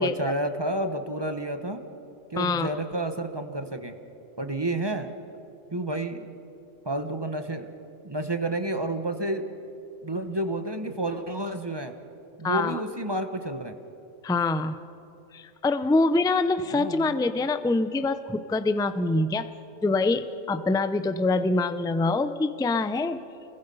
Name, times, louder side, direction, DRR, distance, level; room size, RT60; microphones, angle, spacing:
voice 1, 0.0-1.8 2.3-4.0 4.4-5.1 5.7-6.3 6.8-7.7 8.0-9.5 10.0-11.9 12.4-13.7 16.7-17.1, right 1 dB, 20° right, 7 dB, 1.0 m, -30 dB
voice 2, 2.4-2.7 12.4-12.8 14.2-14.8 15.3-19.5 19.8-23.2, left 3 dB, 5° left, 11 dB, 0.3 m, -25 dB
29.0 x 21.5 x 5.5 m, 2.9 s
omnidirectional pair, 1.2 m